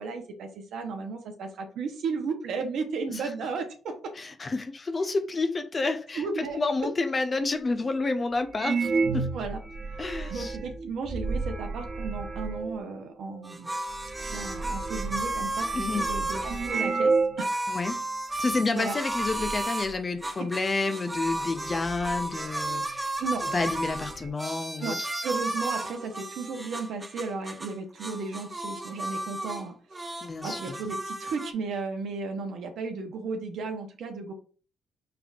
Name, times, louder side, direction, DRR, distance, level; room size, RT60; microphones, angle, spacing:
voice 1, 0.0-3.9 6.1-6.6 9.3-9.6 10.3-13.7 14.3-17.7 18.7-18.9 20.4-20.5 23.2-23.4 24.8-34.3, right 4 dB, 75° right, 0.8 m, -34 dB
voice 2, 4.2-9.3 10.0-10.6 15.7-16.1 17.7-18.0 18.4-23.1 23.5-25.1 30.2-30.8, left 3 dB, 30° left, 0.5 m, -29 dB
sound 1, 7.1-7.2 7.8-7.9 8.5-12.8 13.6-13.7 13.9-17.4 17.7-17.8 18.5-18.8 19.1-19.6 20.9-21.0 21.4-22.9 23.2-23.3 23.6-24.3, right 4 dB, 35° right, 1.0 m, -31 dB
sound 2, 13.4-16.8 17.4-19.9 20.2-27.7 28.0-29.6 29.9-31.5, right 1 dB, 15° right, 0.5 m, -33 dB
5.0 x 3.3 x 2.4 m
cardioid pair, 90°, 0 cm